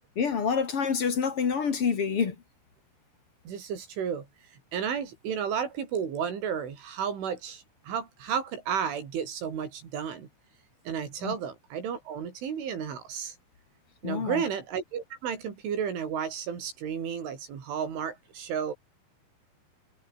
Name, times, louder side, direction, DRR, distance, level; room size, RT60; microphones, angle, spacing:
voice 1, 0.2-2.4 11.2-11.4 14.0-14.4, left 6 dB, 40° left, 2.1 m, -27 dB
voice 2, 3.5-4.3 4.7-10.3 10.9-13.4 14.0-18.7, right 7 dB, 85° right, 6.9 m, -32 dB
omnidirectional pair, 5.4 m